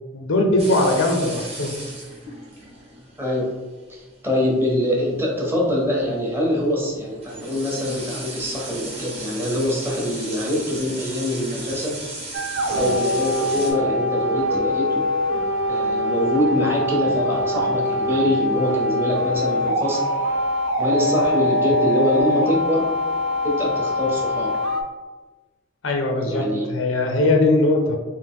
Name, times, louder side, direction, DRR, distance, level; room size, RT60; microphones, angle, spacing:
voice 1, 0.1-1.7 25.8-28.0, left 2 dB, 85° left, 3 dB, 0.6 m, -20 dB
sound 1, 0.6-13.7, right 2 dB, 30° right, 1.1 m, -36 dB
voice 2, 3.2-3.5 3.9-11.9 12.7-15.0 15.7-20.0 20.8-22.9 23.4-24.5 26.2-26.6, left 1 dB, 10° right, -3 dB, 0.8 m, -24 dB
sound 2, 12.3-24.8, left 1 dB, 70° right, 0.4 m, -23 dB
3.5 x 2.4 x 3.6 m, 1.2 s
head